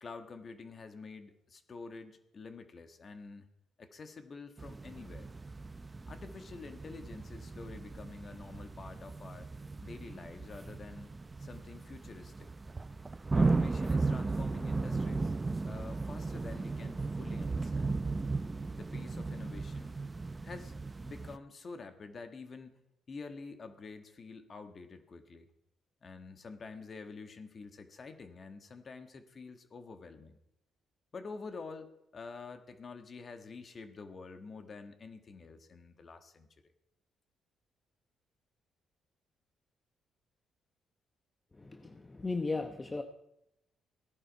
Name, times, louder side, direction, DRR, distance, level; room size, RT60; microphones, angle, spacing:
voice 1, 0.0-3.5 3.8-5.3 6.1-9.5 9.8-11.1 11.4-12.5 13.3-15.3 15.6-18.0 18.7-20.0 20.4-22.8 23.1-25.5 26.0-30.4 31.1-36.5, left 4 dB, 40° left, 8 dB, 1.6 m, -48 dB
sound 1, 4.6-21.4, right 3 dB, 25° right, 0.6 m, -36 dB
voice 2, 41.6-43.0, left 3 dB, 20° left, 6 dB, 0.9 m, -36 dB
16.5 x 11.0 x 4.7 m, 0.83 s
cardioid pair, 90°, 0 cm